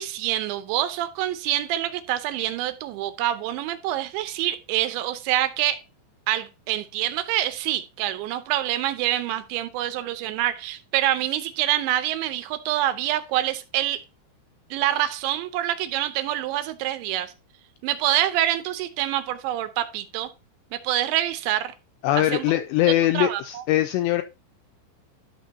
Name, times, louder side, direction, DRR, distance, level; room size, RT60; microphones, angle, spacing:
voice 1, 0.0-5.8 6.3-14.0 14.7-17.3 17.8-20.3 20.7-21.7 22.1-22.5 23.1-23.6, right 13 dB, 80° right, 3.0 m, -26 dB
voice 2, 22.0-24.2, left 14 dB, 85° left, 2.5 m, -22 dB
12.0 x 6.5 x 2.8 m
omnidirectional pair, 5.4 m